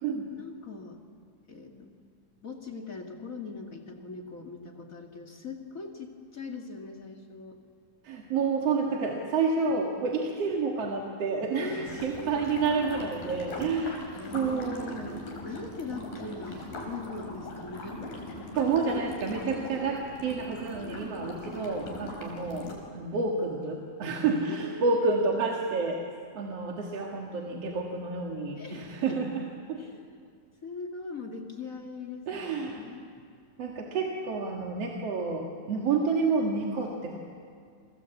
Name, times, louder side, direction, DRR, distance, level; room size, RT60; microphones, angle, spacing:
voice 1, 0.3-1.0 1.5-1.9 2.4-7.6 11.5-12.4 14.2-15.0 15.4-18.0 19.5-19.8 20.7-21.2 24.5-25.2 28.5-29.2 29.8-30.2 30.6-33.1, left 3 dB, 30° left, 3 dB, 1.8 m, -41 dB
voice 2, 8.0-15.2 16.0-16.1 18.5-22.7 22.9-26.0 26.3-29.4 29.7-29.8 32.3-32.9 33.6-37.2, right 4 dB, 50° right, 0 dB, 2.7 m, -29 dB
sound 1, 11.9-22.7, left 2 dB, 80° left, 6.1 m, -40 dB
29.0 x 24.5 x 8.2 m, 2.2 s
omnidirectional pair, 3.9 m